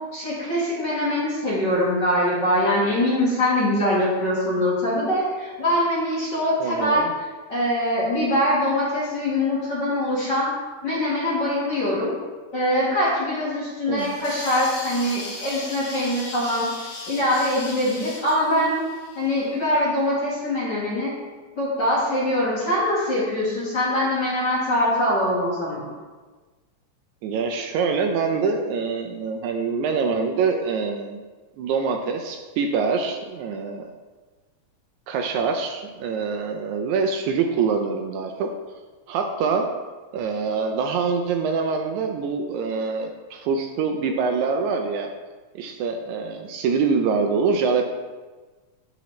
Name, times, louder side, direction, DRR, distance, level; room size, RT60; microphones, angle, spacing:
voice 1, 0.1-10.5 10.8-12.1 12.5-16.7 17.1-18.8 19.1-21.1 21.6-25.9, left 1 dB, 45° left, -7 dB, 1.6 m, -23 dB
voice 2, 6.6-7.1 13.9-14.2 27.2-31.2 31.6-33.9 35.1-38.5 39.1-39.7 40.1-45.1 45.6-47.9, right 5 dB, 80° right, 4 dB, 1.8 m, -25 dB
sound 1, 14.0-19.8, left 2 dB, 60° left, 2.2 m, -37 dB
11.5 x 4.1 x 3.1 m, 1.3 s
omnidirectional pair, 3.6 m